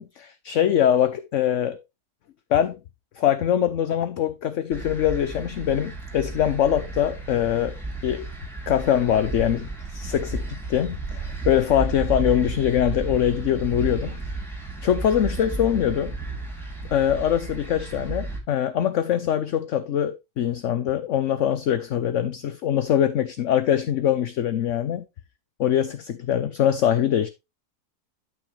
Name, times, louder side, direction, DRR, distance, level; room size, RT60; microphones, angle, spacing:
voice 1, 0.0-1.8 2.5-2.8 3.2-7.8 8.0-8.3 8.7-9.7 9.9-14.2 14.8-16.1 16.9-25.0 25.6-27.3, left 10 dB, 60° left, 0.9 m, -23 dB
sound 1, 4.7-18.4, right 3 dB, ahead, 3.3 m, -33 dB
12.0 x 6.2 x 3.2 m
omnidirectional pair, 1.7 m